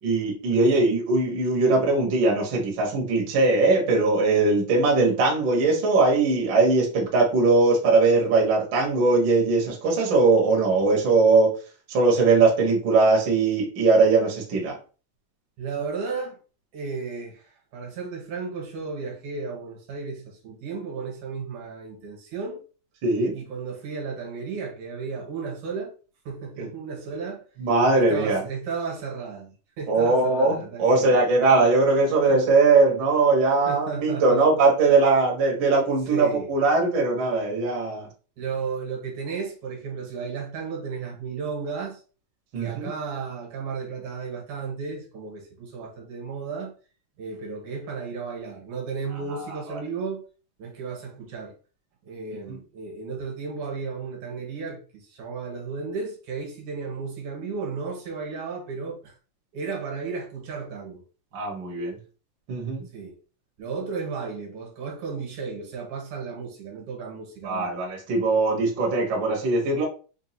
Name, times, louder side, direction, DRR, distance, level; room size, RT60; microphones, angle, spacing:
voice 1, 0.0-11.5 11.9-14.7 23.0-23.3 26.6-26.7 27.6-28.4 29.9-38.1 42.5-42.9 61.3-62.0 62.5-62.8 67.4-69.8, right 3 dB, 55° right, 1.3 m, -20 dB
voice 2, 15.6-16.4 16.7-22.6 23.3-25.9 26.3-27.5 27.9-31.2 32.3-32.4 33.7-34.7 36.1-36.5 38.4-42.0 42.6-46.7 47.2-50.2 50.6-51.5 52.0-59.1 59.5-61.0 62.9-63.2 63.6-67.8, right 5 dB, 75° right, 2.6 m, -34 dB
5.4 x 2.4 x 2.8 m
omnidirectional pair, 3.6 m